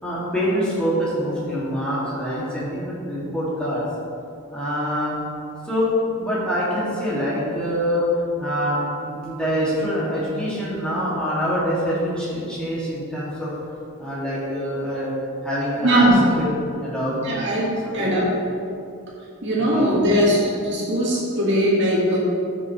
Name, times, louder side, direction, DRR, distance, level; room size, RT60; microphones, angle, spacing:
voice 1, 0.0-3.8 4.5-5.2 5.6-8.1 8.4-13.5 14.0-15.1 15.4-16.5 16.8-17.2 17.8-18.1 19.6-20.0, equal, 5° left, -9 dB, 2.4 m, -25 dB
voice 2, 15.8-16.2 17.2-18.3 19.4-22.2, equal, 55° right, -6 dB, 2.2 m, -20 dB
15.0 x 6.2 x 3.3 m, 2.6 s
head